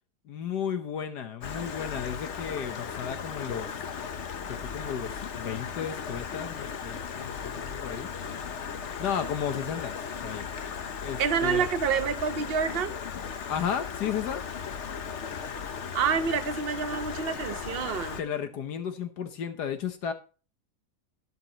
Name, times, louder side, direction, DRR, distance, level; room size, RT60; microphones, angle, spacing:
voice 1, 0.3-3.7 4.5-8.1 9.0-9.9 10.2-10.4 11.0-11.7 13.5-14.4 18.2-20.1, left 8 dB, 80° left, 1.6 m, -33 dB
Stream, 1.4-18.2, left 6 dB, 50° left, 1.1 m, -36 dB
voice 2, 11.2-13.0 15.9-18.2, right 6 dB, 40° right, 1.0 m, -28 dB
12.0 x 11.5 x 3.0 m
omnidirectional pair, 1.7 m